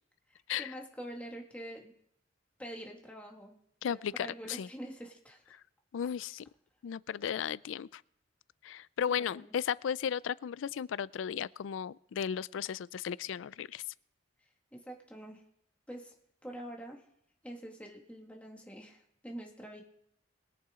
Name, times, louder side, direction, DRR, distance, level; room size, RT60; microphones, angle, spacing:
voice 1, 0.3-1.9 2.6-3.6 3.9-5.6 9.2-9.6 14.7-15.4 15.9-16.1 16.4-17.0 17.4-19.8, right 1 dB, 5° left, 1.9 m, -46 dB
voice 2, 3.8-4.7 5.9-6.5 6.8-8.0 8.6-13.8, left 8 dB, 90° left, 0.4 m, -35 dB
21.5 x 8.8 x 3.7 m
head